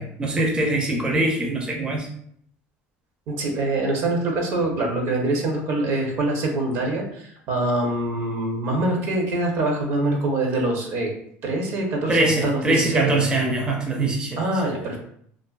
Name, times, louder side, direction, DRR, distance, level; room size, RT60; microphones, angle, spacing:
voice 1, 0.0-2.1 12.1-14.4, right 2 dB, 20° right, 0 dB, 0.5 m, -22 dB
voice 2, 3.3-11.1 11.4-13.2 14.4-15.0, right 2 dB, 60° right, 1 dB, 0.7 m, -24 dB
2.4 x 2.4 x 2.3 m, 0.66 s
supercardioid pair, 100°, 5 cm